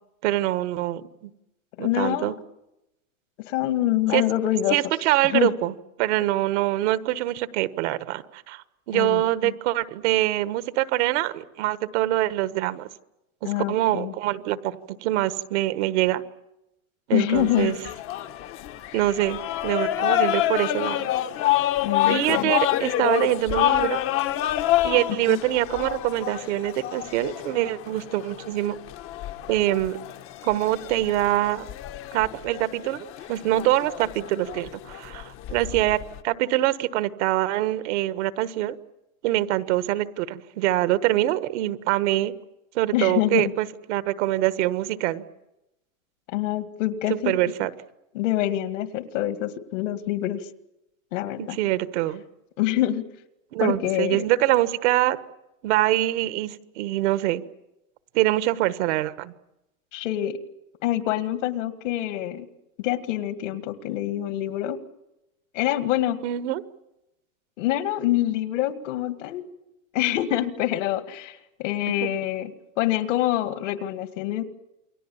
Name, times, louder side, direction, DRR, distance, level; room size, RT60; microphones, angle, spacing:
voice 1, 0.2-1.3 1.8-2.3 4.1-4.2 4.7-5.7 6.0-12.9 13.7-16.2 17.1-17.7 18.9-21.1 22.1-24.0 24.8-28.8 29.5-30.0 30.4-31.7 32.1-38.7 39.2-42.4 42.7-45.2 47.1-47.7 51.4-52.2 53.5-55.2 55.6-57.4 58.1-59.3 66.2-66.6 72.0-72.1, right 15 dB, 55° right, 13 dB, 1.4 m, -24 dB
voice 2, 1.8-2.3 3.5-4.8 5.3-5.5 8.9-9.5 13.4-14.1 17.1-17.7 21.8-22.5 25.3-25.4 42.9-43.5 46.3-47.4 48.1-50.5 51.1-51.6 52.6-53.0 53.6-54.2 59.9-60.4 60.8-62.5 62.8-64.8 65.5-66.2 67.6-69.4 69.9-72.5 72.8-74.4, left 13 dB, 65° left, 10 dB, 2.2 m, -25 dB
sound 1, 17.3-36.2, left 13 dB, 30° left, 1.0 m, -28 dB
28.5 x 22.5 x 7.2 m, 0.92 s
supercardioid pair, 140°, 41 cm